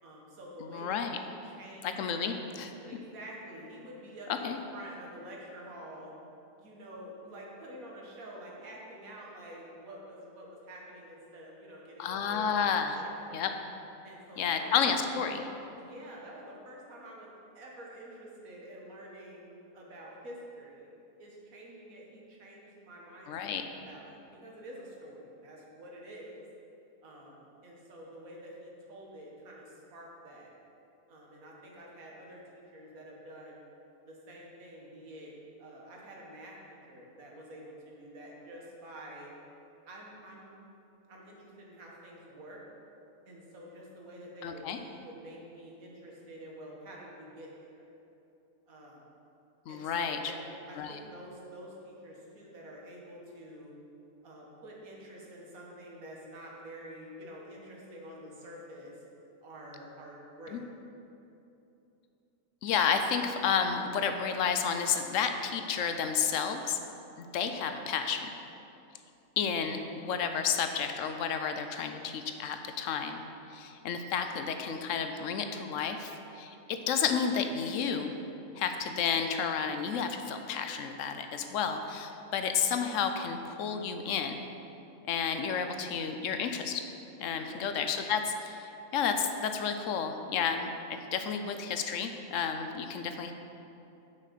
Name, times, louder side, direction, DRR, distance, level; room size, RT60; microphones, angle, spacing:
voice 1, 0.0-2.4 2.8-6.1 6.6-13.5 14.0-14.7 15.0-15.1 15.8-17.3 17.5-19.5 19.7-20.9 21.2-26.4 27.0-30.5 31.1-33.6 34.1-39.3 39.9-40.6 41.1-42.6 43.2-47.8 48.7-49.0 49.7-53.7 54.2-58.9 59.4-60.6 87.4-87.7, right 1 dB, 80° right, -3 dB, 1.8 m, -48 dB
voice 2, 0.7-1.2 1.8-2.7 4.4-4.6 12.0-13.0 13.3-13.5 14.4-15.4 23.3-23.6 44.4-44.8 49.7-50.2 50.8-50.9 60.5-60.6 62.6-66.8 67.2-68.3 69.4-73.2 73.5-78.1 78.6-84.4 85.1-86.8 87.2-93.3, left 6 dB, 70° left, 7 dB, 1.0 m, -31 dB
6.3 x 5.8 x 6.7 m, 2.9 s
omnidirectional pair, 1.4 m